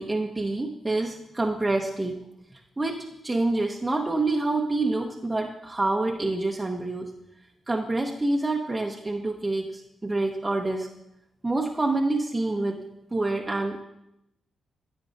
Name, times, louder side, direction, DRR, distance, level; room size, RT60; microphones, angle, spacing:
voice 1, 0.0-2.2 2.5-7.1 7.7-10.9 11.4-12.8 13.1-13.8, right 2 dB, 25° right, 0 dB, 0.8 m, -27 dB
10.5 x 8.0 x 2.5 m, 0.85 s
cardioid pair, 55°, 0 cm